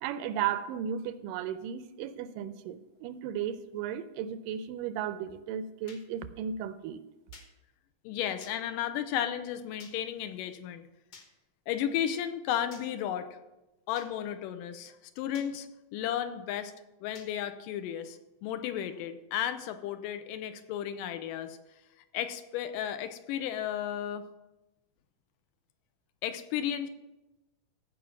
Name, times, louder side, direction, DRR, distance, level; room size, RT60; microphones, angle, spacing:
voice 1, 0.0-7.0, right 9 dB, 85° right, 12 dB, 2.2 m, -35 dB
sound 1, 5.9-6.0 7.3-7.5 8.4-8.6 9.8-10.0 11.1-11.3 12.7-12.9 14.0-14.1 15.3-15.5 17.2-17.3, left 4 dB, 55° left, 1.1 m, -51 dB
voice 2, 8.0-10.8 11.7-13.3 13.9-15.7 15.9-16.7 17.0-21.6 22.1-24.2 26.2-26.9, left 10 dB, 90° left, 10 dB, 2.3 m, -34 dB
15.0 x 5.1 x 5.8 m, 1.0 s
omnidirectional pair, 3.8 m